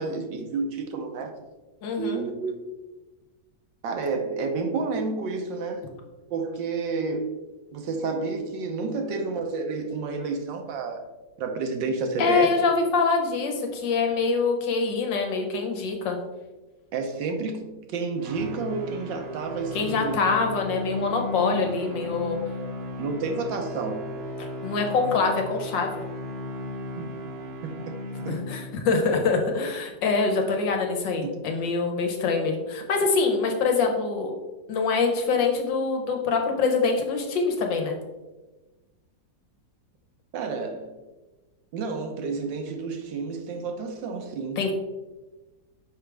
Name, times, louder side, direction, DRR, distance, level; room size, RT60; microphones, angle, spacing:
voice 1, 0.0-1.3 2.0-2.5 3.8-5.9 6.3-7.3 7.7-11.0 11.4-12.6 16.9-20.2 23.0-24.1 27.0-27.1 27.6-28.5 31.2-31.3 40.3-40.9 41.7-44.6, right 4 dB, 85° right, 1.5 m, -30 dB
voice 2, 1.8-2.2 12.2-16.2 19.7-22.4 24.4-26.0 28.3-34.3 34.7-38.0 44.6-44.7, left 4 dB, 80° left, 1.7 m, -25 dB
sound 1, 18.2-29.0, left 1 dB, 50° right, 0.8 m, -35 dB
6.6 x 4.9 x 3.4 m
omnidirectional pair, 2.0 m